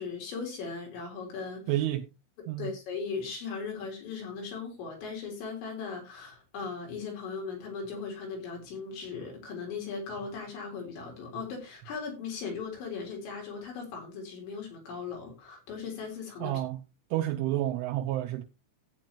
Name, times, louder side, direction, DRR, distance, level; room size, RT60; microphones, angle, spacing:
voice 1, 0.0-1.7 2.6-16.6, left 5 dB, 70° left, 6.1 m, -38 dB
voice 2, 1.7-2.1 2.5-2.7 16.4-16.8 17.1-18.4, right 14 dB, 85° right, 3.3 m, -30 dB
14.5 x 9.1 x 3.0 m
omnidirectional pair, 5.5 m